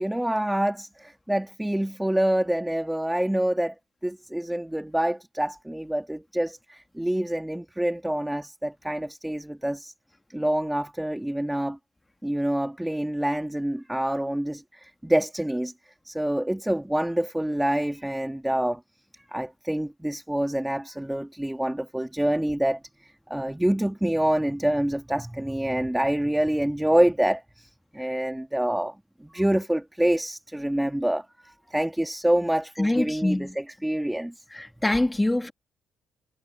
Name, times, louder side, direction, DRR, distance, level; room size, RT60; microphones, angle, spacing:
voice 1, 0.0-3.7 4.0-9.9 10.3-11.8 12.2-15.7 16.0-18.8 19.1-34.4, right 1 dB, 5° right, 3.4 m, -26 dB
voice 2, 32.8-33.6 34.5-35.5, left 1 dB, 10° left, 2.0 m, -24 dB
cardioid pair, 90°, 0 cm